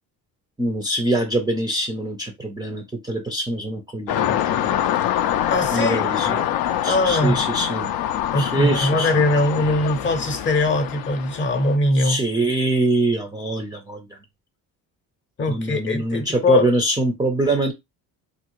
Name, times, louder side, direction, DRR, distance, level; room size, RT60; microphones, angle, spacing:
voice 1, 0.6-4.9 5.7-6.3 6.8-7.9 8.4-9.1 11.9-14.2 15.5-17.7, right 2 dB, 10° right, 0.4 m, -24 dB
sound 1, 4.1-11.8, left 11 dB, 70° left, 0.5 m, -25 dB
voice 2, 5.5-6.6 6.9-7.4 8.3-12.2 15.4-16.7, left 2 dB, 30° left, 0.8 m, -21 dB
3.6 x 2.5 x 2.9 m
cardioid pair, 140°, 38 cm